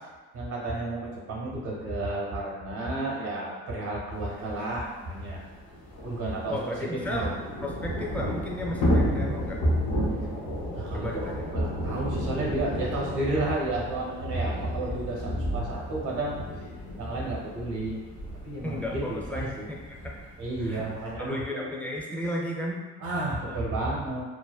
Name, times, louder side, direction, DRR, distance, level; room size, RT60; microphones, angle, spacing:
voice 1, 0.3-5.4 6.0-6.6 6.9-7.3 10.8-16.4 17.0-18.0 18.4-19.7 20.4-21.4 23.0-24.2, right 2 dB, 90° right, -4 dB, 0.8 m, -31 dB
Thunder / Rain, 4.5-4.6 4.8-4.9 5.2-21.1, equal, 90° left, 0.6 m, -32 dB
voice 2, 6.5-9.6 10.9-11.4 18.6-20.2 20.6-20.8 21.2-22.8 23.4-23.9, left 1 dB, 5° left, -3 dB, 0.4 m, -34 dB
2.6 x 2.1 x 2.3 m, 1.3 s
cardioid pair, 90°, 30 cm